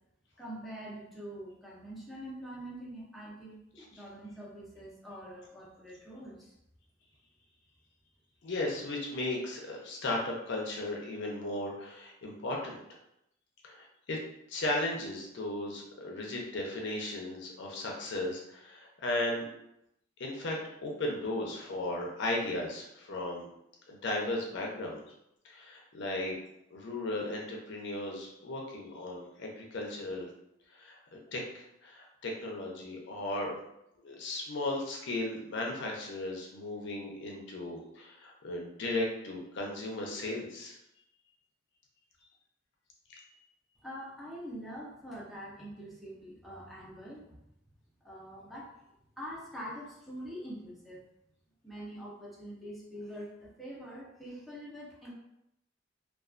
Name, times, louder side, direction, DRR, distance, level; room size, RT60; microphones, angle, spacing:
voice 1, 0.4-6.5 43.8-47.4 48.0-48.8 49.2-51.0 51.6-55.1, equal, ahead, -6 dB, 0.5 m, -44 dB
voice 2, 8.4-12.8 13.6-14.2 14.5-19.5 20.2-23.5 23.9-25.0 25.4-26.4 26.7-30.3 30.7-33.5 34.0-40.8 43.1-43.2, left 2 dB, 65° left, -1 dB, 0.5 m, -36 dB
2.3 x 2.2 x 2.4 m, 0.81 s
head